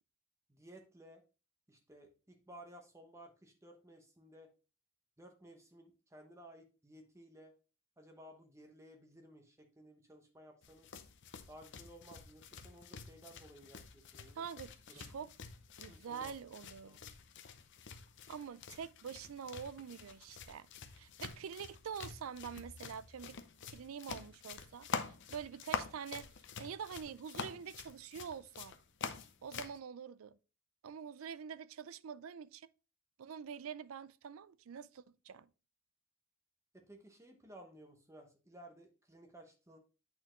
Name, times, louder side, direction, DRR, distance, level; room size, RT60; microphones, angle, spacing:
voice 1, 0.5-1.2 1.7-4.5 5.2-7.5 8.0-10.9 11.5-14.4 14.9-15.1 15.8-16.3 16.9-17.2 36.7-39.8, right 1 dB, 15° right, 0.8 m, -57 dB
sound 1, 10.6-29.8, left 5 dB, 55° left, 0.6 m, -47 dB
voice 2, 14.4-15.3 15.8-17.0 18.3-20.7 20.9-23.4 23.7-26.3 26.6-28.7 29.4-30.4 30.8-32.7 33.2-35.5, right 7 dB, 70° right, 0.4 m, -46 dB
8.5 x 4.4 x 3.0 m
head